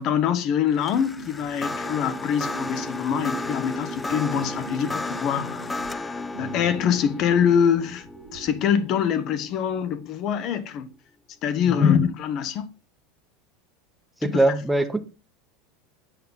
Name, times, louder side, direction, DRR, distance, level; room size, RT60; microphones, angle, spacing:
voice 1, 0.0-8.1 8.3-10.9 11.4-12.7 14.2-14.4, left 8 dB, 45° left, 1.0 m, -24 dB
sound 1, 0.7-10.0, left 3 dB, 15° left, 0.5 m, -34 dB
sound 2, 1.1-8.8, right 6 dB, 80° right, 1.1 m, -42 dB
voice 2, 14.2-15.0, right 2 dB, 5° right, 0.9 m, -22 dB
8.5 x 5.6 x 3.7 m
supercardioid pair, 120°, 0 cm